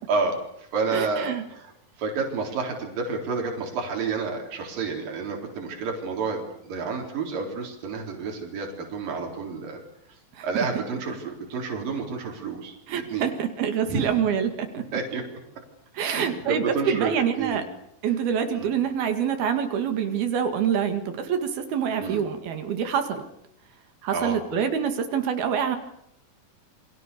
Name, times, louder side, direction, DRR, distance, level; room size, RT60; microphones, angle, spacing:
voice 1, 0.1-9.8 10.4-13.3 13.9-14.1 14.9-15.2 16.0-17.6 18.5-18.7 22.0-22.2 24.1-24.4, right 4 dB, 65° right, 1 dB, 5.6 m, -30 dB
voice 2, 0.9-1.4 10.3-10.5 12.9-14.8 15.9-17.6 18.0-23.2 24.0-25.8, right 8 dB, 80° right, 7 dB, 4.1 m, -26 dB
29.0 x 24.0 x 6.9 m, 0.74 s
omnidirectional pair, 4.3 m